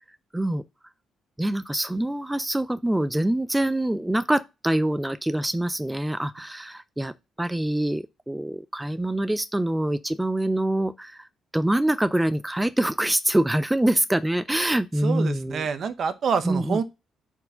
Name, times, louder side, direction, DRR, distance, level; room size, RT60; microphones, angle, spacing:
voice 1, 0.3-0.6 1.4-11.3 11.5-15.7 16.4-16.8, right 1 dB, 10° right, 0.3 m, -25 dB
voice 2, 15.0-16.8, right 6 dB, 55° right, 0.7 m, -27 dB
4.5 x 4.2 x 5.4 m
cardioid pair, 90°, 0 cm